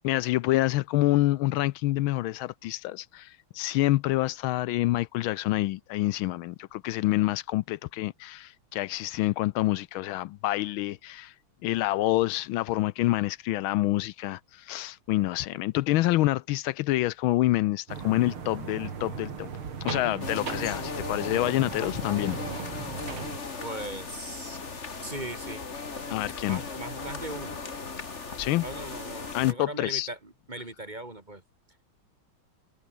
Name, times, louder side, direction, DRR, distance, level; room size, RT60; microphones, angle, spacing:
voice 1, 0.0-11.3 11.6-19.5 19.8-22.4 22.7-22.8 26.1-26.6 28.4-28.6 29.3-30.1, left 17 dB, 80° left, 1.4 m, -27 dB
sound 1, 17.9-23.4, right 6 dB, 85° right, 3.5 m, -37 dB
sound 2, 20.2-29.5, left 4 dB, 35° left, 2.3 m, -37 dB
voice 2, 23.6-24.6 25.0-25.6 26.5-27.6 28.6-31.4, right 2 dB, 20° right, 2.2 m, -39 dB
omnidirectional pair, 2.3 m